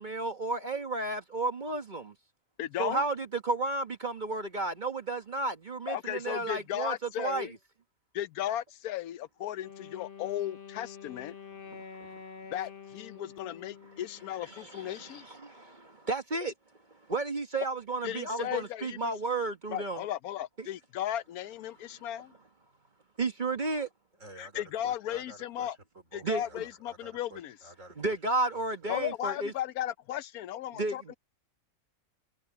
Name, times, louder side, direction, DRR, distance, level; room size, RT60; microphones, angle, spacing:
voice 1, 0.0-2.1 2.8-7.5 11.7-12.1 14.4-16.5 17.1-20.0 20.6-20.7 23.2-23.9 26.2-26.6 28.0-29.5 30.7-31.2, right 3 dB, 35° right, 1.3 m, -33 dB
voice 2, 2.6-3.0 5.9-7.5 8.1-11.3 12.5-15.2 18.0-19.1 19.7-22.3 24.4-25.8 26.1-27.5 28.9-31.2, left 12 dB, 90° left, 1.1 m, -35 dB
Wind instrument woodwind instrument, 9.6-14.6, left 6 dB, 40° left, 1.3 m, -47 dB
voice 3, 24.1-28.2 28.5-29.1, right 2 dB, 60° right, 4.7 m, -51 dB
omnidirectional pair, 1.5 m